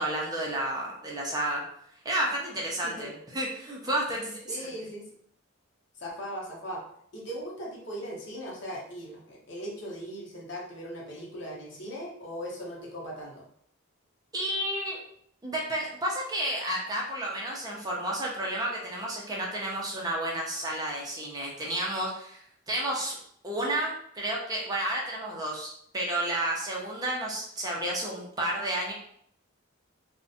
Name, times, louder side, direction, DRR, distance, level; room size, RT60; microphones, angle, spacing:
voice 1, 0.0-1.6 2.0-4.6 14.3-15.0 15.4-22.4 22.7-23.2 23.4-28.9, right 1 dB, 20° right, -3 dB, 0.4 m, -31 dB
voice 2, 4.5-5.1 6.0-6.8 7.1-13.4, equal, 60° left, -3 dB, 0.7 m, -39 dB
2.5 x 2.1 x 2.6 m, 0.67 s
head